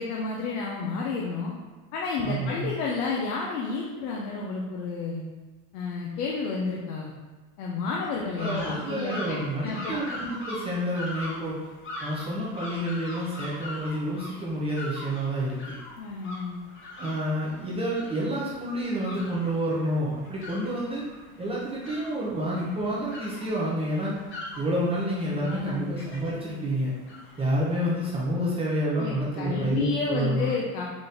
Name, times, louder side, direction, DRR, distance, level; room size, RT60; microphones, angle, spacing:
voice 1, 0.0-1.5 1.9-5.2 5.7-7.1 7.6-10.2 16.0-16.6 25.3-25.9 29.0-30.8, left 4 dB, 85° left, -3 dB, 0.7 m, -31 dB
voice 2, 2.2-2.7 8.4-11.6 12.0-15.7 17.0-21.0 21.4-24.1 24.6-26.9 27.4-30.5, right 1 dB, 15° right, -6 dB, 0.4 m, -29 dB
sound 1, 8.4-28.2, left 2 dB, 25° left, 0.8 m, -42 dB
4.1 x 2.5 x 3.4 m, 1.3 s
supercardioid pair, 135°, 46 cm